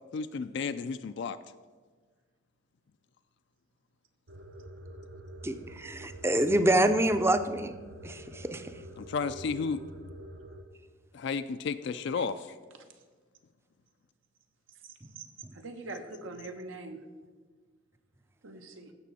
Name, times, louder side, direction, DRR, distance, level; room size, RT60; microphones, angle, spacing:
voice 1, 0.1-1.4 9.0-9.8 11.1-12.5, left 5 dB, 60° left, 10 dB, 0.4 m, -32 dB
sound 1, 4.3-10.6, equal, 70° right, 0.8 m, -46 dB
voice 2, 5.4-7.7 8.0-8.6, right 1 dB, 15° right, 10 dB, 0.5 m, -26 dB
voice 3, 14.8-15.3 15.5-17.0 18.4-18.9, right 2 dB, 85° right, 5 dB, 1.1 m, -43 dB
15.5 x 6.1 x 4.2 m, 1.4 s
head